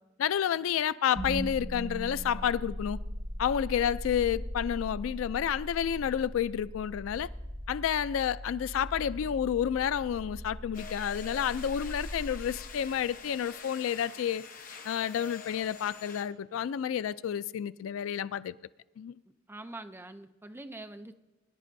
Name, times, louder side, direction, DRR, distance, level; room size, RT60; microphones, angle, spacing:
voice 1, 0.2-3.0 3.4-7.3 7.7-14.5 14.8-18.6 19.0-19.2, left 9 dB, 80° left, 0.3 m, -30 dB
sound 1, 1.1-13.3, equal, 75° right, 2.0 m, -40 dB
sound 2, 10.7-16.2, left 5 dB, 45° left, 1.0 m, -46 dB
voice 2, 19.5-21.1, right 2 dB, 10° right, 0.5 m, -44 dB
22.5 x 10.5 x 2.6 m
head